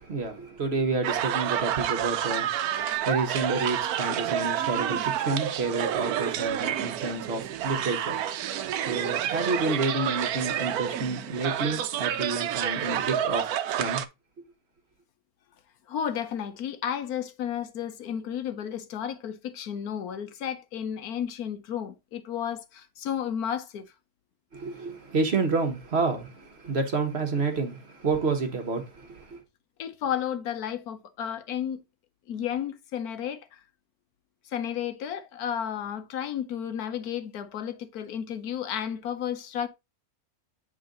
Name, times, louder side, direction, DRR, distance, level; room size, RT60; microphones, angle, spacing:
voice 1, 0.0-2.5 3.1-8.2 8.9-13.4 13.8-14.0 24.5-29.4, right 3 dB, 45° right, 1.3 m, -29 dB
sound 1, 1.0-14.1, right 10 dB, 90° right, 1.1 m, -29 dB
voice 2, 15.9-23.9 29.8-31.8 32.3-33.4 34.5-39.7, left 9 dB, 90° left, 1.4 m, -32 dB
7.7 x 3.8 x 3.7 m
omnidirectional pair, 1.5 m